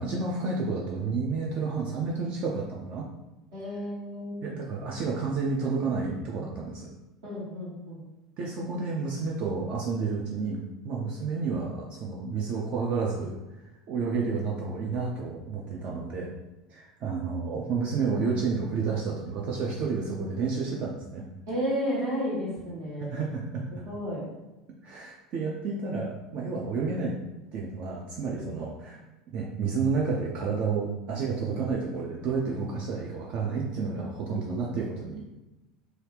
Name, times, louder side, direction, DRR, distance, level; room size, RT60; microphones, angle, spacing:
voice 1, 0.0-3.1 4.4-6.9 8.4-10.6 10.8-16.3 16.7-21.2 23.0-23.8 24.8-27.2 27.5-29.0 29.3-35.2, right 4 dB, 45° right, -2 dB, 0.4 m, -30 dB
voice 2, 3.5-4.6 7.2-8.0 21.5-23.2 23.8-24.3 28.4-28.5 34.3-34.7, equal, 65° right, -7 dB, 1.4 m, -32 dB
2.7 x 2.4 x 3.2 m, 1.0 s
figure-of-eight pair, 70°, 3 cm